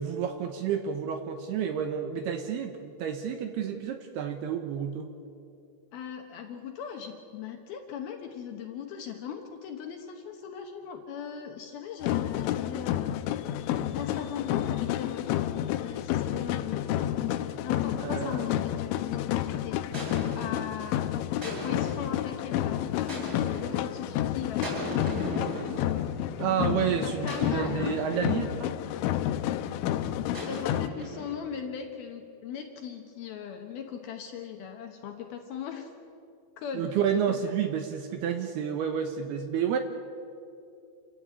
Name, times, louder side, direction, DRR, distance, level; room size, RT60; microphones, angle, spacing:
voice 1, 0.0-5.1 18.0-18.5 26.4-28.8 36.8-39.8, right 8 dB, 75° right, 6 dB, 2.6 m, -30 dB
voice 2, 5.9-13.2 13.9-15.5 15.8-16.9 17.4-19.8 20.3-21.1 21.4-25.8 26.8-28.0 30.4-35.9 36.6-37.4, left 8 dB, 70° left, 4 dB, 2.6 m, -39 dB
sound 1, 12.0-30.9, left 12 dB, 85° left, 3.2 m, -30 dB
sound 2, 19.9-20.7 21.4-22.2 23.1-23.8 24.6-26.3 27.3-28.5 30.3-31.6, left 1 dB, 25° right, 8.7 m, -38 dB
28.0 x 14.5 x 8.8 m, 2.6 s
omnidirectional pair, 5.5 m